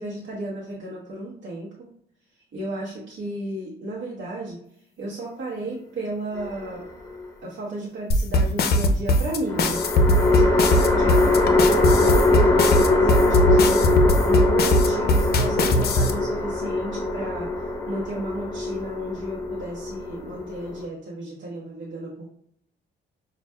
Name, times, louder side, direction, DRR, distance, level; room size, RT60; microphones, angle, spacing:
voice 1, 0.0-1.9 2.5-4.6 5.0-6.8 7.4-9.8 10.3-13.8 14.2-17.5 17.9-22.3, right 1 dB, 70° right, -5 dB, 1.0 m, -33 dB
sound 1, 6.4-7.2 9.5-20.8, left 2 dB, 15° left, 1.1 m, -22 dB
sound 2, 8.1-16.1, left 1 dB, 55° left, 0.5 m, -20 dB
5.5 x 2.4 x 2.2 m, 0.69 s
cardioid pair, 90°, 20 cm